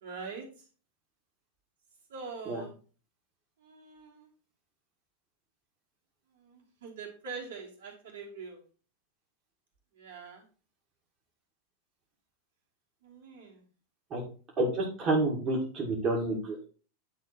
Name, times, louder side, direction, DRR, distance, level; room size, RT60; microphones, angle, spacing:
voice 1, 0.0-0.7 2.1-2.7 3.6-4.3 6.4-8.6 9.9-10.4 13.0-13.6, right 5 dB, 60° right, -2 dB, 2.7 m, -44 dB
voice 2, 14.6-16.7, right 2 dB, 30° right, -2 dB, 2.0 m, -29 dB
9.8 x 3.7 x 4.3 m, 0.38 s
figure-of-eight pair, 90°, 0 cm